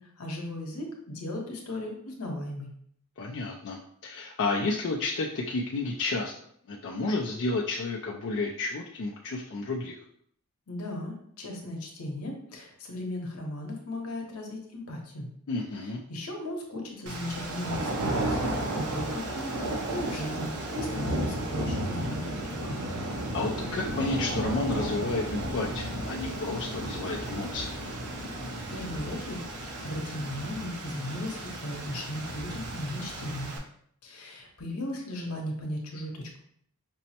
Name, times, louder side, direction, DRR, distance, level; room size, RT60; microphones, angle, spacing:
voice 1, 0.0-2.7 10.7-15.3 15.8-19.6 19.9-22.8 28.7-33.5 34.0-36.4, left 1 dB, 80° left, 1 dB, 0.9 m, -36 dB
voice 2, 3.2-6.3 6.7-9.9 15.5-16.0 23.3-27.7, left 3 dB, 55° left, -2 dB, 0.4 m, -31 dB
sound 1, 17.1-33.6, right 1 dB, 80° right, 0.7 m, -33 dB
5.2 x 2.0 x 2.8 m, 0.67 s
head